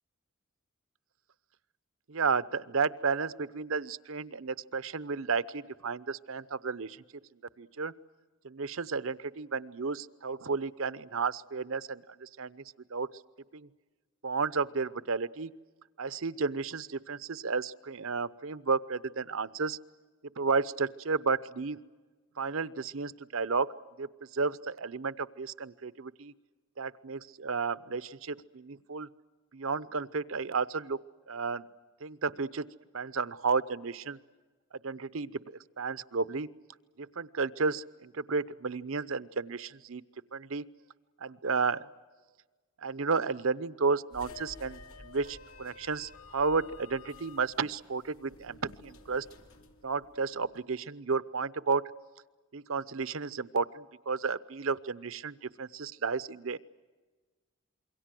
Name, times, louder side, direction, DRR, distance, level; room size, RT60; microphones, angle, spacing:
voice 1, 2.1-7.0 7.6-7.9 8.4-12.6 12.9-13.1 13.5-13.7 14.2-15.5 16.0-19.8 20.4-21.8 22.4-23.7 24.0-26.3 26.8-29.1 29.5-31.0 31.3-31.7 32.0-32.7 32.9-34.2 34.8-35.3 35.8-36.5 37.0-40.0 40.3-40.6 41.2-41.9 42.8-49.3 49.8-51.8 52.5-56.6, right 4 dB, 75° right, 16 dB, 0.8 m, -32 dB
sound 1, 44.1-50.6, left 4 dB, 85° left, 2.5 m, -52 dB
27.5 x 23.0 x 7.6 m, 1.3 s
head